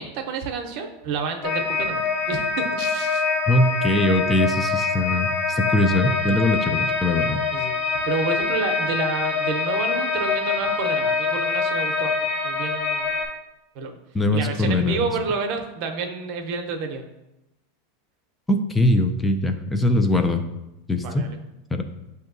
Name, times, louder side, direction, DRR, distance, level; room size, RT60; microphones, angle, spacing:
voice 1, 0.0-3.2 7.5-12.1 12.4-13.1 13.7-13.9 14.3-17.0 21.0-21.4, right 4 dB, 55° right, 5 dB, 0.6 m, -29 dB
sound 1, 1.4-13.3, left 4 dB, 60° left, 1.4 m, -25 dB
voice 2, 3.5-7.4 14.1-15.1 18.5-20.4 20.9-21.0 21.7-21.8, left 1 dB, 10° left, 6 dB, 0.3 m, -21 dB
7.7 x 2.7 x 2.6 m, 0.94 s
supercardioid pair, 130°, 0 cm